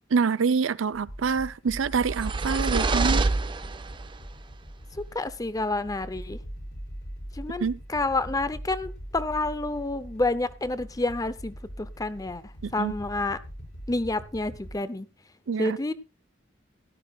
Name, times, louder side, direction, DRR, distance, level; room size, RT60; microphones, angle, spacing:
voice 1, 0.1-3.3 7.6-7.8 12.6-12.9 15.5-15.8, right 5 dB, 85° right, 0.5 m, -26 dB
sound 1, 0.9-14.7, equal, 65° left, 5.3 m, -42 dB
sound 2, 1.8-4.2, right 3 dB, 25° right, 0.6 m, -26 dB
voice 2, 4.9-6.4 7.3-13.4 13.9-15.1 15.6-15.9, left 2 dB, 20° left, 0.7 m, -29 dB
16.5 x 12.0 x 2.4 m
head